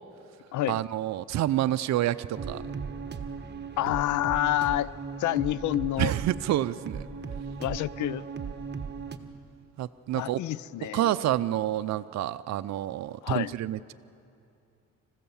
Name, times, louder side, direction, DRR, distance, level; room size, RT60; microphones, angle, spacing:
voice 1, 0.7-2.6 6.0-7.1 9.8-10.4 10.8-13.9, right 13 dB, 65° right, 11 dB, 0.6 m, -28 dB
sound 1, 2.4-9.2, right 5 dB, 35° right, 1.3 m, -37 dB
voice 2, 3.8-4.9 5.2-6.1 7.6-8.2 10.1-11.1 13.2-13.5, left 15 dB, 75° left, 21 dB, 0.5 m, -28 dB
26.0 x 15.5 x 7.1 m, 2.6 s
cardioid pair, 90°, 30 cm